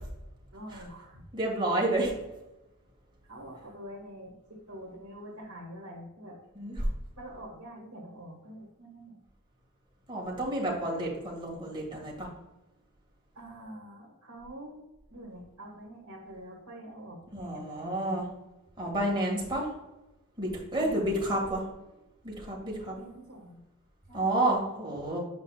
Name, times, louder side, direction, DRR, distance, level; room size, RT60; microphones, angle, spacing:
voice 1, 0.5-1.2 3.2-6.4 7.2-9.2 13.4-14.8 15.1-18.2 20.8-21.1 22.7-23.6 24.1-24.4, equal, 70° right, -4 dB, 1.8 m, -46 dB
voice 2, 1.3-2.1 6.6-6.9 10.1-12.3 17.3-18.3 18.8-19.7 20.4-21.7 22.2-22.9 24.1-25.2, right 1 dB, 20° right, -2 dB, 1.9 m, -30 dB
8.5 x 5.2 x 2.4 m, 0.98 s
head